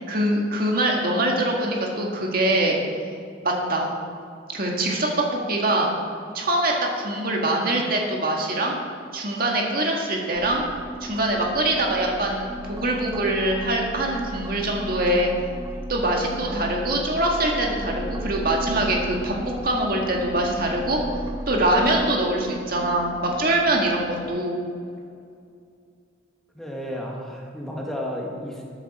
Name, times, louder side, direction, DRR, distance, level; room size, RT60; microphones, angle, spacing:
voice 1, 0.1-2.8 3.4-3.9 4.5-5.9 6.3-8.8 9.1-10.7 11.0-15.3 15.9-19.3 19.6-21.0 21.5-24.7, right 1 dB, 45° right, 0 dB, 1.8 m, -23 dB
sound 1, 10.3-24.4, right 1 dB, 15° right, 0.4 m, -35 dB
voice 2, 26.5-28.6, equal, ahead, -2 dB, 1.6 m, -32 dB
13.5 x 9.1 x 4.3 m, 2.4 s
head